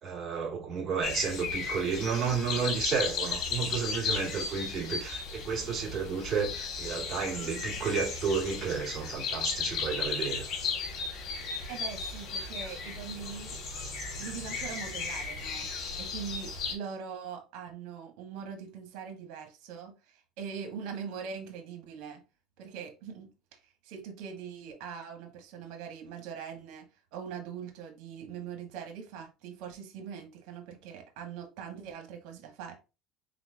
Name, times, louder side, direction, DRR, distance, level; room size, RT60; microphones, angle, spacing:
voice 1, 0.0-10.4, right 5 dB, 35° right, 2.7 m, -32 dB
sound 1, 1.0-16.7, left 5 dB, 55° left, 2.5 m, -35 dB
voice 2, 11.7-13.6 14.2-15.7 16.0-22.2 22.6-23.3 23.8-32.8, right 7 dB, 70° right, 1.5 m, -42 dB
4.3 x 4.2 x 2.8 m
supercardioid pair, 100°, 0 cm